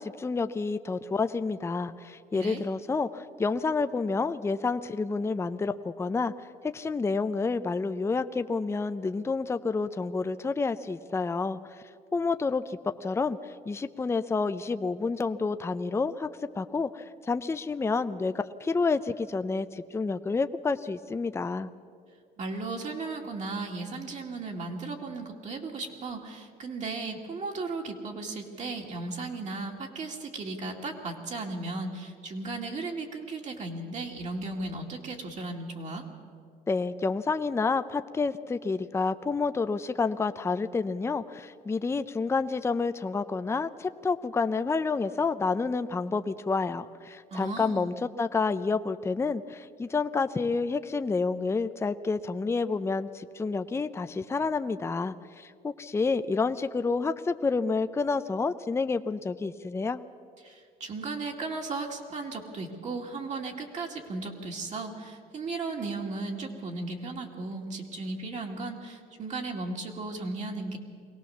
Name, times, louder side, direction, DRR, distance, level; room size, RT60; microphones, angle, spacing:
voice 1, 0.0-6.3 6.7-11.6 12.1-16.3 16.6-21.7 36.7-60.0, left 4 dB, 15° left, 11 dB, 0.5 m, -29 dB
voice 2, 22.4-36.0 47.3-47.9 60.4-70.8, right 3 dB, 45° right, 1 dB, 2.5 m, -36 dB
22.0 x 17.5 x 7.2 m, 2.3 s
cardioid pair, 110°, 17 cm